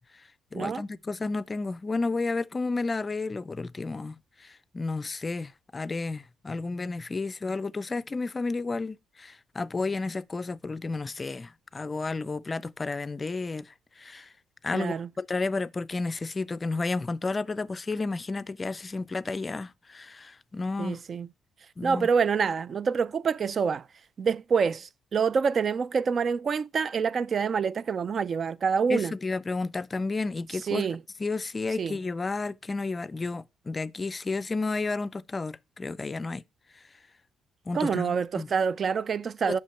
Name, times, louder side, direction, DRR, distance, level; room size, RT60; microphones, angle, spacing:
voice 1, 0.5-14.3 14.6-21.0 21.8-22.1 28.9-30.9 31.2-36.4 37.7-38.5 39.5-39.6, left 3 dB, 30° left, 0.4 m, -32 dB
voice 2, 14.7-15.1 20.8-21.3 21.8-23.9 24.2-29.1 30.6-31.0 31.8-32.0 37.7-39.6, right 6 dB, 50° right, 0.3 m, -26 dB
7.4 x 5.8 x 4.3 m
cardioid pair, 90°, 0 cm